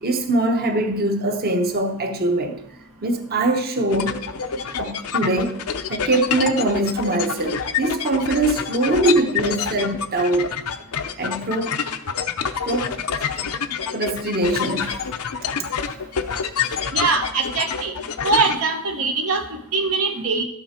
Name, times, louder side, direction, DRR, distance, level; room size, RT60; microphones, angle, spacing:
voice 1, 0.0-2.6 3.0-4.2 4.8-5.6 5.9-10.5 11.2-11.8 12.6-13.0 13.9-15.1, right 2 dB, 45° right, 1.0 m, -22 dB
sound 1, 3.9-18.6, left 7 dB, 80° left, 0.7 m, -27 dB
voice 2, 16.9-17.9 18.2-20.4, right 4 dB, 70° right, 0.9 m, -22 dB
12.5 x 6.3 x 4.4 m
head